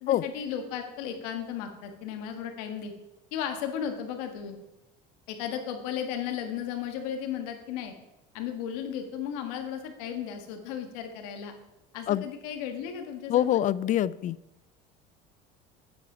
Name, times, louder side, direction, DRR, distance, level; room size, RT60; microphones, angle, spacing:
voice 1, 0.0-2.9 3.3-4.6 5.3-7.9 8.3-11.6 11.9-13.6, left 8 dB, 90° left, 5 dB, 1.6 m, -35 dB
voice 2, 13.3-14.4, left 12 dB, 40° left, 19 dB, 0.4 m, -25 dB
9.1 x 7.6 x 5.0 m, 0.97 s
cardioid pair, 115°, 19 cm